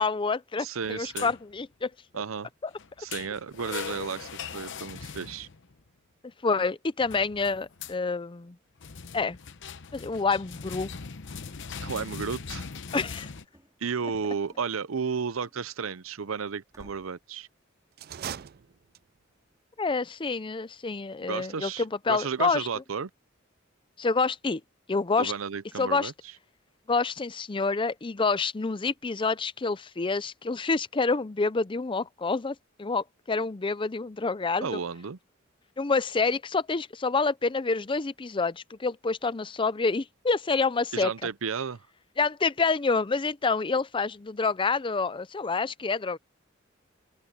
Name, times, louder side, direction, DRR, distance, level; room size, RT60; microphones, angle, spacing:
voice 1, 0.0-1.9 6.4-8.6 9.1-9.4 9.9-10.9 12.9-13.3 19.8-22.7 24.0-24.6 24.9-25.3 25.8-26.1 26.9-34.8 35.8-41.1 42.2-46.2, left 4 dB, 25° left, 0.5 m, -27 dB
voice 2, 0.6-1.3 2.1-2.5 3.0-5.5 11.8-12.7 13.8-17.5 21.2-23.1 25.2-26.1 34.6-35.2 40.9-41.8, right 6 dB, 85° right, 0.7 m, -33 dB
sound 1, 0.8-1.6 2.8-5.8 7.0-8.0 8.8-13.4, left 6 dB, 65° left, 0.9 m, -40 dB
Run / Slam, 12.9-15.8 16.1-16.2 16.7-17.2, right 1 dB, 15° right, 5.0 m, -58 dB
sound 2, 17.9-19.3, right 9 dB, 50° right, 0.4 m, -40 dB
open air
head